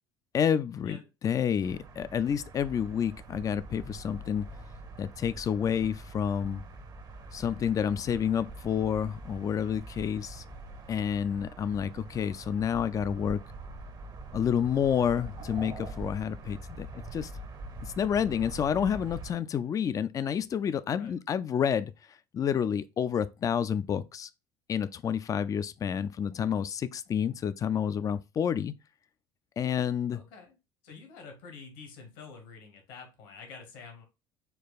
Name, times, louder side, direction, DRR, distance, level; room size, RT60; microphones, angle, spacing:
voice 1, 0.3-1.0 1.2-4.5 5.0-6.6 7.3-10.4 10.9-13.4 14.3-17.3 17.8-21.9 22.3-24.3 24.7-28.7 29.6-30.2, left 8 dB, 30° left, 0.4 m, -29 dB
sound 1, 1.6-19.3, right 2 dB, 35° right, 0.8 m, -44 dB
voice 2, 30.1-30.6 30.8-34.1, left 5 dB, 70° left, 1.3 m, -48 dB
4.5 x 2.3 x 4.0 m
hypercardioid pair, 65°, 11 cm